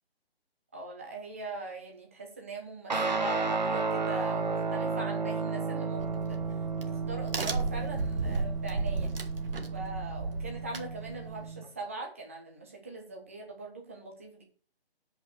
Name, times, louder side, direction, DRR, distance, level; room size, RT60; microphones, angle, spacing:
voice 1, 0.7-6.4 6.8-9.1 9.7-14.4, right 2 dB, 15° right, 0 dB, 1.2 m, -41 dB
Guitar, 2.9-11.7, right 4 dB, 45° right, 1.3 m, -33 dB
Crack, 6.0-11.4, right 3 dB, 60° right, 1.7 m, -34 dB
8.2 x 5.5 x 6.8 m, 0.40 s
hypercardioid pair, 180°, 31 cm